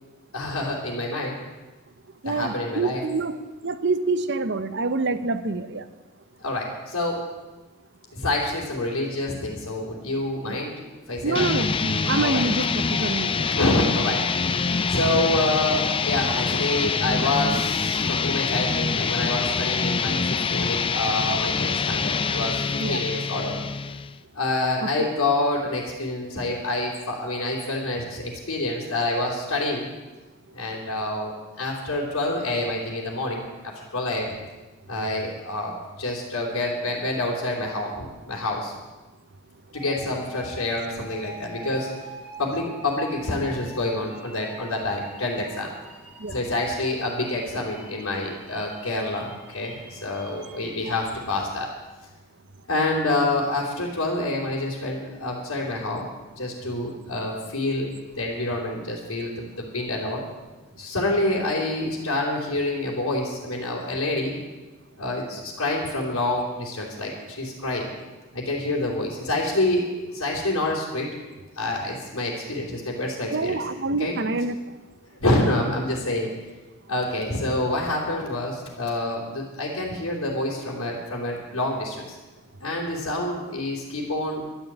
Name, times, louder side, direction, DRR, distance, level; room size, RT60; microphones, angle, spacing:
voice 1, 0.3-1.4 2.2-3.0 6.4-7.2 8.1-10.7 11.1-11.6 12.1-12.4 13.5-14.2 14.9-20.2 20.5-23.6 24.3-29.9 30.5-34.3 34.9-38.7 39.7-41.9 42.4-45.7 46.3-51.7 52.7-60.2 60.8-64.4 65.0-67.9 68.3-71.1 71.5-74.2 75.1-76.3 76.9-82.2 82.6-84.4, left 2 dB, 90° left, -5 dB, 3.2 m, -27 dB
voice 2, 2.2-3.3 3.6-5.8 10.5-10.6 11.2-13.5 22.8-23.0 46.2-46.3 73.3-74.6, right 3 dB, 55° right, 12 dB, 0.8 m, -26 dB
sound 1, 11.3-24.2, left 5 dB, 25° left, 0.4 m, -25 dB
sound 2, 39.7-50.8, right 1 dB, 5° right, 2.3 m, -45 dB
12.5 x 9.4 x 8.8 m, 1.2 s
head